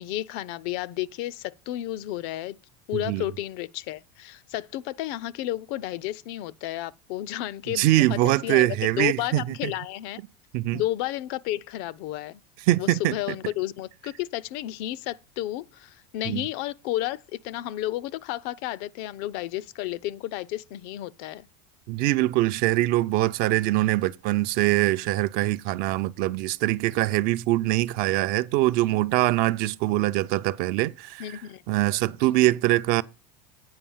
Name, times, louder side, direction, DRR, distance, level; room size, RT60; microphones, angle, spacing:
voice 1, 0.0-2.6 2.9-10.2 10.7-12.4 12.8-21.5 31.2-31.6, left 14 dB, 50° left, 0.5 m, -32 dB
voice 2, 2.9-3.3 7.7-9.7 10.5-10.8 12.7-13.1 16.3-16.5 21.9-31.4 31.7-33.0, right 17 dB, 50° right, 0.5 m, -23 dB
8.7 x 5.3 x 7.1 m
supercardioid pair, 145°, 20 cm